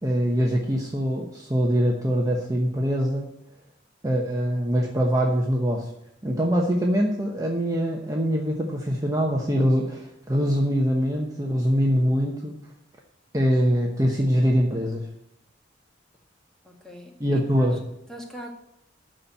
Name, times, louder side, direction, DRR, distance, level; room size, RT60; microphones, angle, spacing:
voice 1, 0.0-3.3 4.0-5.9 6.2-12.6 13.3-15.1 17.2-17.7, equal, 20° right, -1 dB, 1.0 m, -23 dB
voice 2, 16.6-17.8 18.1-18.6, equal, 5° left, 0 dB, 1.9 m, -41 dB
12.5 x 4.4 x 8.1 m, 0.79 s
head